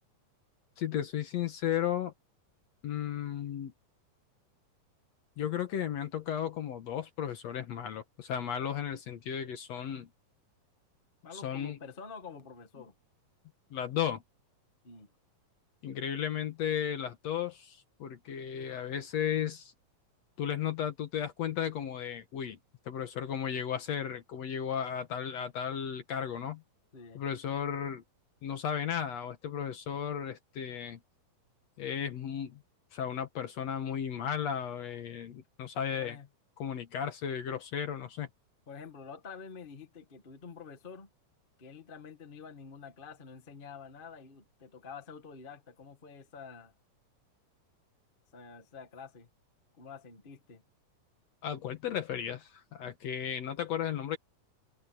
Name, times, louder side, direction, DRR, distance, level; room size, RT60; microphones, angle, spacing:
voice 1, 0.8-2.1 2.8-3.7 5.4-10.1 11.3-11.8 13.7-14.2 15.8-19.7 20.4-22.6 22.9-26.6 27.2-28.0 28.4-31.0 31.8-32.6 32.9-36.2 36.6-38.3 51.4-54.2, left 9 dB, 60° left, 2.1 m, -34 dB
voice 2, 11.2-12.9 14.8-15.1 26.9-27.2 36.0-36.3 38.7-41.1 41.6-46.7 48.3-49.3 49.8-50.6, left 5 dB, 30° left, 1.0 m, -48 dB
omnidirectional pair, 4.0 m